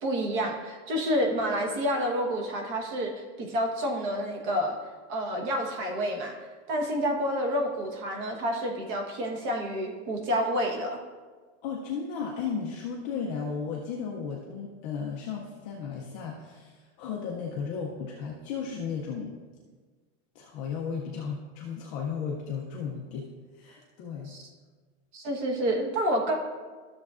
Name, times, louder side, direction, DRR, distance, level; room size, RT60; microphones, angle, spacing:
voice 1, 0.0-4.8 5.1-6.3 6.7-11.0 24.3-24.4 25.1-26.3, equal, 35° right, 3 dB, 1.1 m, -29 dB
voice 2, 11.6-19.3 20.3-24.3, left 6 dB, 20° left, -2 dB, 0.4 m, -35 dB
13.0 x 6.8 x 2.4 m, 1.4 s
supercardioid pair, 170°, 37 cm